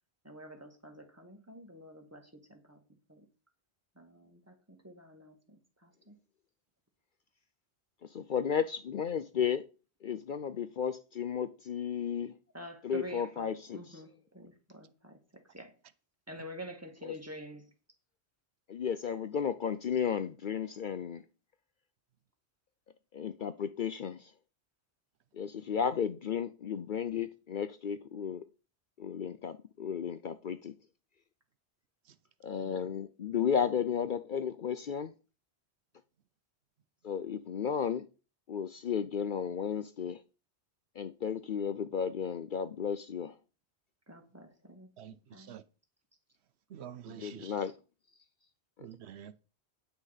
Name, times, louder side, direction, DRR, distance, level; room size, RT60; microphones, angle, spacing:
voice 1, 0.2-2.8 3.1-3.3 4.0-6.2 12.5-15.8 16.3-17.7 32.6-32.7 44.1-44.9 45.3-45.6, equal, 15° right, 1.9 m, -48 dB
voice 2, 8.1-9.6 10.0-12.3 12.8-14.0 17.0-17.1 18.7-21.2 23.1-24.3 25.3-28.4 29.0-30.7 32.4-35.1 37.0-38.0 38.5-40.2 41.0-43.3 47.2-47.7, left 7 dB, 55° left, 0.7 m, -33 dB
voice 3, 45.0-45.6 46.7-47.6 48.8-49.4, right 9 dB, 75° right, 0.9 m, -48 dB
9.7 x 6.3 x 5.7 m
omnidirectional pair, 1.1 m